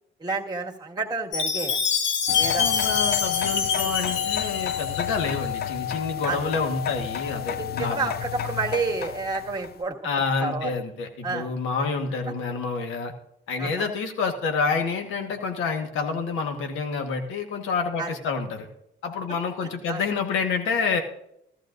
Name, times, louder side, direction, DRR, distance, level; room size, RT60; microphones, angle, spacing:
voice 1, 0.2-1.8 2.4-2.8 3.7-4.0 6.2-6.5 7.6-10.0 10.4-10.8 11.2-11.5 12.2-12.3 13.6-13.9 18.0-18.1 19.9-20.0, right 4 dB, 20° right, 0 dB, 1.9 m, -30 dB
Chime, 1.3-5.5, left 6 dB, 70° left, 1.3 m, -26 dB
sound 1, 2.3-9.8, left 10 dB, 55° left, 0.4 m, -30 dB
voice 2, 2.6-8.1 10.0-13.1 13.5-18.7 19.0-21.0, left 5 dB, 90° left, 5 dB, 1.5 m, -28 dB
14.5 x 13.5 x 2.6 m, 0.77 s
cardioid pair, 90°, 20 cm